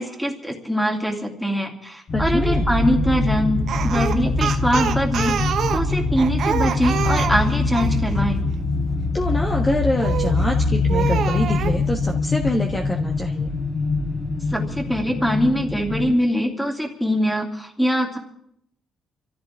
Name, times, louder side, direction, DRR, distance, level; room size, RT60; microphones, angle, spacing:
voice 1, 0.0-5.4 5.7-8.4 14.5-18.2, equal, ahead, 2 dB, 2.9 m, -23 dB
sound 1, 2.1-16.1, left 3 dB, 45° left, 4.3 m, -23 dB
voice 2, 2.1-2.7 9.1-13.5, left 1 dB, 25° left, 1 dB, 1.5 m, -25 dB
Speech, 3.7-8.0 10.0-10.4 10.9-11.8, right 8 dB, 65° right, 1.1 m, -26 dB
25.5 x 14.5 x 3.7 m, 0.73 s
cardioid pair, 90°, 0 cm